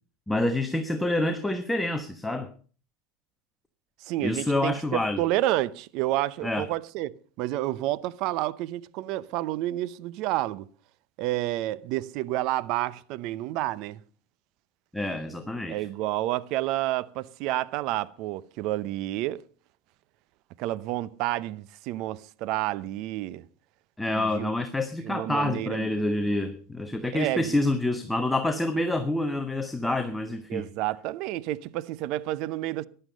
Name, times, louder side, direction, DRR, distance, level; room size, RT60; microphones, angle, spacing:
voice 1, 0.3-2.5 4.2-5.2 6.4-6.7 14.9-15.8 24.0-30.6, left 1 dB, 5° left, 1.2 m, -27 dB
voice 2, 4.0-10.7 11.2-14.0 15.7-19.4 20.6-23.4 24.1-24.5 25.0-25.9 27.1-27.6 30.5-32.9, right 15 dB, 60° right, 0.7 m, -30 dB
14.5 x 11.5 x 5.3 m
supercardioid pair, 115°, 0 cm